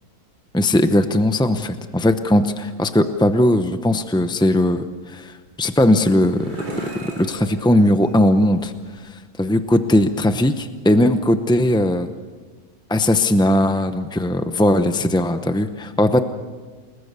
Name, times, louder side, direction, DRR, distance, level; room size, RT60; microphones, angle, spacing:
voice 1, 0.5-6.6 7.2-8.7 9.0-12.1 12.9-16.2, left 1 dB, 5° left, 8 dB, 0.4 m, -18 dB
sound 1, 5.5-9.1, right 1 dB, 80° right, 4.4 m, -38 dB
29.0 x 19.5 x 6.8 m, 1.4 s
omnidirectional pair, 1.6 m